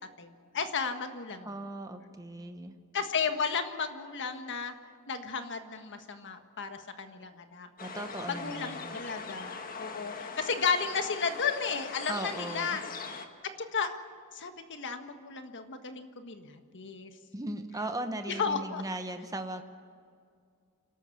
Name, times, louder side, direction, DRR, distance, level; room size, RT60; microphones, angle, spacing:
voice 1, 0.2-1.5 2.9-4.7 5.1-7.7 8.3-12.8 13.7-14.0 14.3-17.1 18.3-18.8, left 5 dB, 55° left, 7 dB, 1.6 m, -33 dB
voice 2, 1.4-2.7 7.8-9.0 12.1-12.8 17.3-19.6, right 1 dB, 15° right, 6 dB, 1.1 m, -38 dB
sound 1, 7.8-13.3, left 4 dB, 40° left, 1.6 m, -41 dB
28.5 x 12.5 x 7.2 m, 2.2 s
head